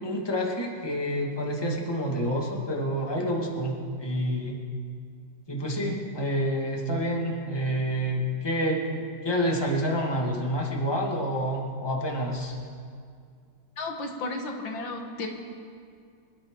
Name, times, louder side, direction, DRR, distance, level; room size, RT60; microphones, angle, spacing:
voice 1, 0.0-4.6 5.5-12.6, equal, 15° left, -2 dB, 2.0 m, -28 dB
voice 2, 13.8-15.3, left 2 dB, 85° left, 2 dB, 2.2 m, -33 dB
25.5 x 12.5 x 3.9 m, 2.3 s
omnidirectional pair, 2.1 m